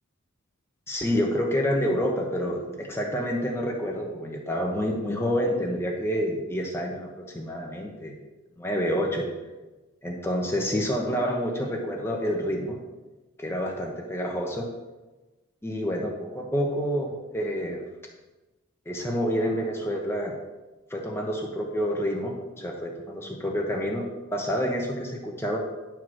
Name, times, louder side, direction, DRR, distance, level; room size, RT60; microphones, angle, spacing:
voice 1, 0.9-8.1 8.6-9.3 10.0-12.8 13.4-14.7 15.6-17.8 18.9-20.4 20.9-24.0 24.3-25.6, equal, 10° left, 0 dB, 1.1 m, -28 dB
11.0 x 4.7 x 6.3 m, 1.1 s
head